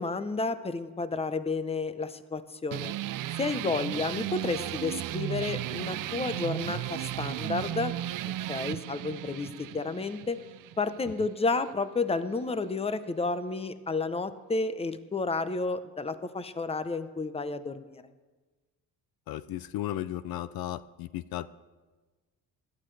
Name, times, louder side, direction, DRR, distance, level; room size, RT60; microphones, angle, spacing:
voice 1, 0.0-2.9 3.4-7.9 8.2-10.4 10.8-18.0, left 3 dB, 15° left, 12 dB, 0.7 m, -31 dB
sound 1, 2.7-11.7, right 14 dB, 60° right, 0.5 m, -35 dB
voice 2, 19.3-21.5, left 13 dB, 70° left, 15 dB, 0.5 m, -35 dB
17.0 x 12.0 x 3.3 m, 1.3 s
cardioid pair, 85°, 38 cm